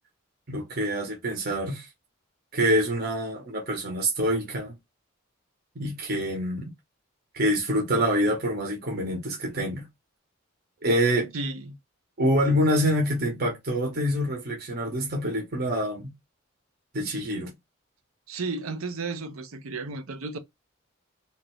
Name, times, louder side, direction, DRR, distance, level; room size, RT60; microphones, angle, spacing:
voice 1, 0.5-1.9 2.5-4.7 5.8-6.7 7.3-9.9 10.8-11.3 12.2-16.1 16.9-17.5, equal, 50° right, 0.9 m, -26 dB
voice 2, 11.3-11.8 18.3-20.4, right 3 dB, 90° right, 0.7 m, -33 dB
2.9 x 2.6 x 3.0 m
head